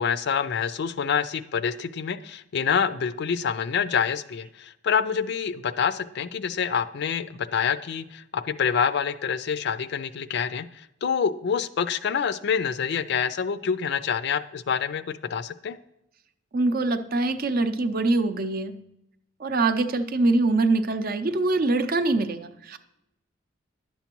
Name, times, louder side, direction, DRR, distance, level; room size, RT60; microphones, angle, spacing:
voice 1, 0.0-15.8, left 7 dB, 60° left, 13 dB, 0.4 m, -27 dB
voice 2, 16.5-18.8 19.4-22.8, right 2 dB, 50° right, 10 dB, 0.5 m, -24 dB
10.5 x 7.0 x 3.0 m, 0.84 s
head